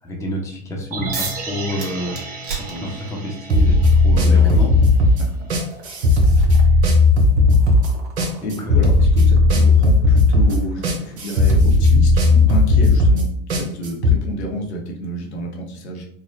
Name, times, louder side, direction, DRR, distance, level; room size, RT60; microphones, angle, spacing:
voice 1, 0.0-2.3 2.5-4.7 5.1-5.2 6.3-6.8 8.4-8.8, equal, 10° left, -2 dB, 0.8 m, -29 dB
sound 1, 0.9-5.1 5.4-5.5, right 3 dB, 25° right, 0.7 m, -34 dB
sound 2, 1.1-1.5 1.8-3.3 4.5-4.6 5.1-11.7, right 4 dB, 55° right, 1.1 m, -37 dB
voice 2, 2.7-3.0 4.1-4.7 5.2-5.3 8.4-16.1, equal, 80° left, 1 dB, 1.0 m, -30 dB
sound 3, 3.5-14.2, left 2 dB, 85° right, 0.7 m, -15 dB
4.1 x 2.1 x 2.6 m, 0.68 s
hypercardioid pair, 90°, 32 cm